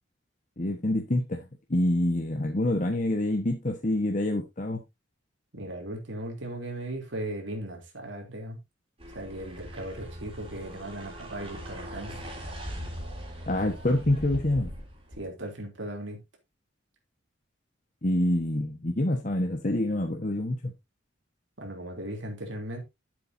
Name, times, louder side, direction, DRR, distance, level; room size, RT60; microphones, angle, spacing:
voice 1, 0.6-1.4 1.7-4.8 13.5-14.7 18.0-20.7, left 1 dB, 40° left, 1.3 m, -26 dB
voice 2, 5.5-8.6 9.1-12.1 15.2-16.2 21.6-22.8, right 1 dB, 75° right, 3.2 m, -37 dB
sound 1, 9.0-15.3, equal, 30° right, 3.9 m, -40 dB
11.5 x 7.8 x 2.7 m
head